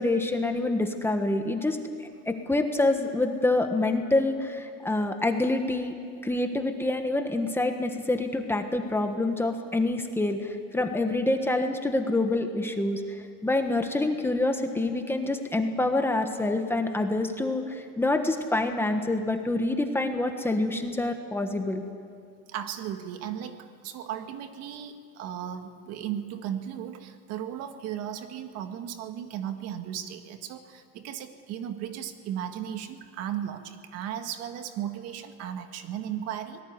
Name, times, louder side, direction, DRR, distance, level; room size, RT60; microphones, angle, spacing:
voice 1, 0.0-5.9 6.2-21.8, left 2 dB, 10° left, 5 dB, 1.4 m, -27 dB
voice 2, 22.5-36.6, right 10 dB, 55° right, 7 dB, 1.9 m, -36 dB
26.0 x 19.0 x 9.7 m, 2.3 s
cardioid pair, 160°, 29 cm